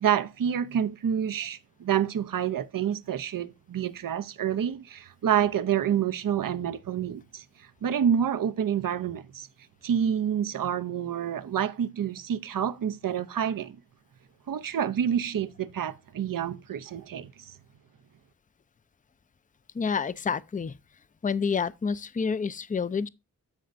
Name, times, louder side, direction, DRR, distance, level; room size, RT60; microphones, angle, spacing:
voice 1, 0.0-7.4 7.8-9.5 9.8-13.8 14.5-17.5, right 9 dB, 75° right, 0.6 m, -28 dB
voice 2, 19.7-20.7 21.2-23.1, left 5 dB, 25° left, 0.4 m, -28 dB
13.5 x 5.1 x 2.5 m
wide cardioid pair, 60°, 33 cm